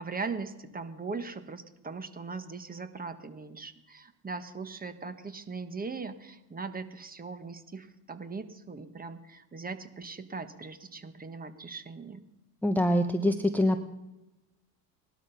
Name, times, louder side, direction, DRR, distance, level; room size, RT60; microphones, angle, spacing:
voice 1, 0.0-12.2, right 4 dB, 20° right, 11 dB, 1.4 m, -39 dB
voice 2, 12.6-13.8, left 1 dB, 5° left, 8 dB, 0.8 m, -25 dB
18.5 x 12.0 x 5.7 m, 1.0 s
supercardioid pair, 100°, 49 cm